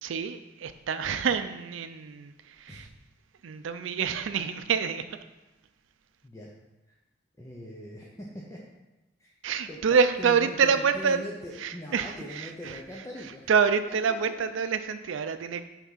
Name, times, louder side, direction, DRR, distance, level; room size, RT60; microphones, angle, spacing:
voice 1, 0.0-2.9 3.4-5.1 9.4-11.2 11.6-12.8 13.5-15.7, right 6 dB, 80° right, 11 dB, 0.4 m, -27 dB
voice 2, 7.4-8.6 9.2-9.3 9.7-13.5 13.9-14.0, left 1 dB, 15° left, -3 dB, 0.6 m, -41 dB
5.9 x 3.5 x 5.7 m, 1.0 s
head